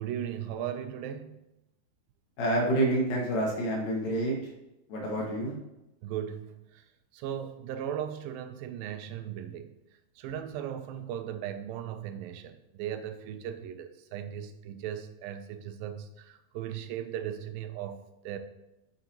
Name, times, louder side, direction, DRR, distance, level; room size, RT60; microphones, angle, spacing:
voice 1, 0.0-1.4 6.0-6.8 7.1-9.7 10.2-18.4, right 10 dB, 85° right, 9 dB, 2.3 m, -37 dB
voice 2, 2.4-4.4 4.9-5.5, right 1 dB, 75° left, -2 dB, 3.4 m, -28 dB
9.2 x 6.1 x 2.9 m, 0.92 s
omnidirectional pair, 4.1 m